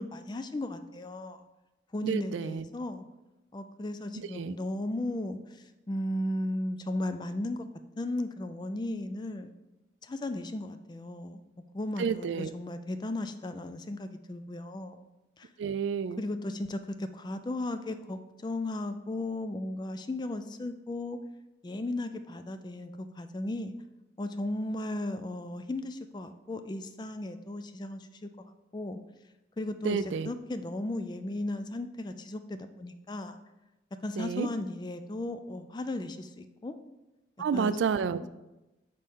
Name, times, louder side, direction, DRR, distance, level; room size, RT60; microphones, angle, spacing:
voice 1, 0.0-1.5 1.9-3.0 3.5-7.7 8.0-9.5 10.0-11.4 11.7-15.0 15.4-15.5 16.2-21.2 21.6-23.7 24.2-29.0 29.6-30.0 30.2-33.4 34.0-36.8 37.5-37.8 38.2-38.3, left 1 dB, 25° left, 9 dB, 0.3 m, -35 dB
voice 2, 2.0-2.6 4.1-4.6 12.0-12.5 15.6-16.2 29.8-30.3 34.2-34.5 37.4-38.2, right 6 dB, 85° right, 14 dB, 0.3 m, -30 dB
5.2 x 4.2 x 5.4 m, 1.0 s
head